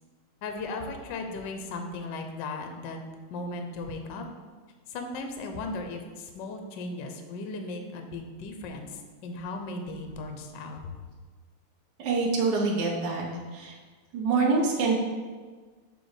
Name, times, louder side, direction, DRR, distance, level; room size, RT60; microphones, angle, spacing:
voice 1, 0.4-3.0 3.3-4.3 4.9-10.8, left 2 dB, 70° left, 4 dB, 1.2 m, -36 dB
voice 2, 12.0-13.2 13.5-13.8 14.1-14.9, right 4 dB, 60° right, -2 dB, 1.4 m, -25 dB
6.8 x 3.4 x 4.7 m, 1.5 s
omnidirectional pair, 2.4 m